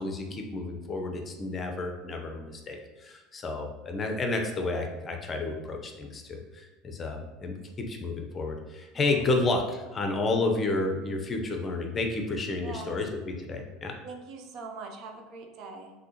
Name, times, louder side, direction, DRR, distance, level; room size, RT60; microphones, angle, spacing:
voice 1, 0.0-14.0, left 2 dB, 30° left, 4 dB, 0.7 m, -31 dB
voice 2, 12.6-13.0 14.0-15.9, right 4 dB, 50° right, 3 dB, 0.7 m, -42 dB
5.9 x 2.7 x 2.9 m, 1.1 s
hypercardioid pair, 80°, 0 cm